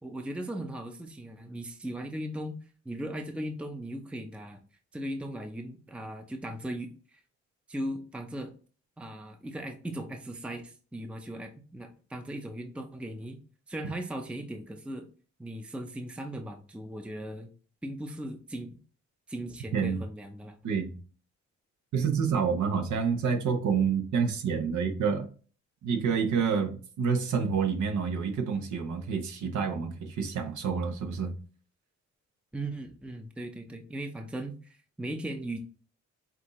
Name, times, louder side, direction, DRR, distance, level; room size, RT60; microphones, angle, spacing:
voice 1, 0.0-2.6 2.9-4.6 4.9-7.2 7.7-8.5 9.0-13.4 13.7-15.1 15.4-17.5 17.8-18.8 19.3-20.6 29.4-29.6 32.5-35.6, right 1 dB, 5° right, 0.6 m, -38 dB
voice 2, 20.6-21.0 21.9-25.3 25.8-31.4, right 6 dB, 75° right, 1.0 m, -28 dB
6.0 x 2.7 x 3.0 m
cardioid pair, 85°, 30 cm